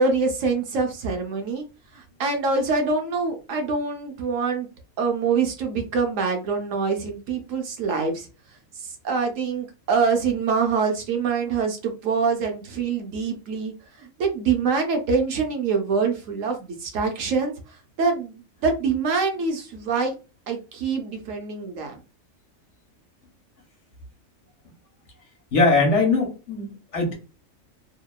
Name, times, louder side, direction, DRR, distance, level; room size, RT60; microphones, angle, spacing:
voice 1, 0.0-1.6 1.9-4.7 5.0-8.3 8.8-17.5 18.0-20.1 20.5-22.0, right 4 dB, 70° right, 3 dB, 1.0 m, -25 dB
voice 2, 25.5-27.1, left 3 dB, 60° left, 1 dB, 1.1 m, -21 dB
2.8 x 2.1 x 2.2 m, 0.31 s
omnidirectional pair, 1.4 m